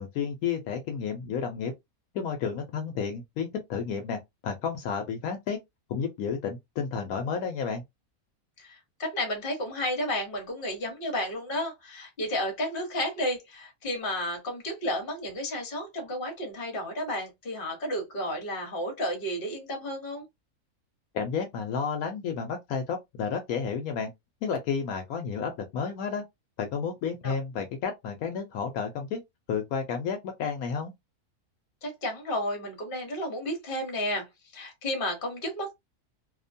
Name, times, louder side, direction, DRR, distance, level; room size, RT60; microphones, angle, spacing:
voice 1, 0.0-1.7 2.1-5.6 5.9-7.8 21.1-24.1 24.4-26.2 26.6-29.2 29.5-30.9, left 6 dB, 75° left, 1.0 m, -31 dB
voice 2, 8.6-20.2 27.2-27.3 31.8-34.3 34.5-35.7, left 1 dB, 40° left, 1.1 m, -32 dB
2.7 x 2.1 x 2.5 m
omnidirectional pair, 1.6 m